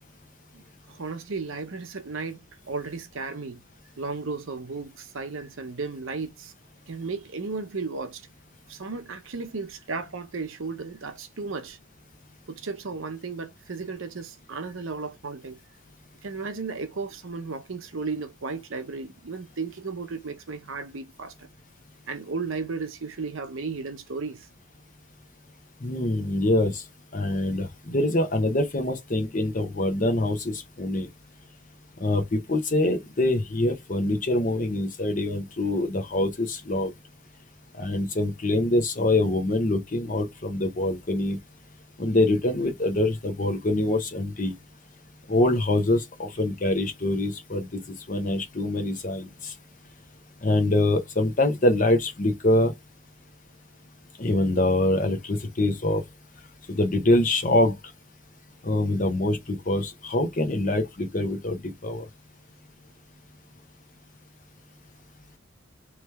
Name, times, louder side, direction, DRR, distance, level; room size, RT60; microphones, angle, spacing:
voice 1, 0.5-3.6 4.0-6.5 6.9-8.3 8.7-11.8 12.5-15.6 16.2-21.5 22.1-24.5, right 4 dB, 65° right, 0.7 m, -34 dB
voice 2, 25.8-26.8 27.1-31.1 32.0-36.9 37.7-41.4 42.0-44.5 45.3-49.5 50.4-52.7 54.2-56.0 56.7-57.7 58.6-62.1, left 1 dB, 40° left, 0.8 m, -24 dB
3.2 x 3.1 x 3.4 m
head